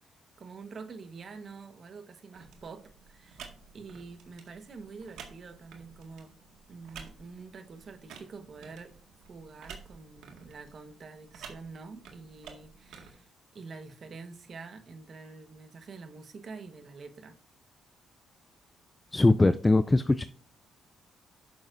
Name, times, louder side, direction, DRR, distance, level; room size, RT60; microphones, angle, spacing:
voice 1, 0.4-3.5 3.7-6.3 6.7-8.9 9.3-17.4, right 4 dB, 50° right, 1.2 m, -46 dB
sound 1, 2.3-13.1, right 6 dB, 85° right, 1.8 m, -51 dB
voice 2, 19.1-20.2, left 2 dB, 15° left, 0.3 m, -21 dB
9.4 x 7.1 x 2.6 m
cardioid pair, 90°, 0 cm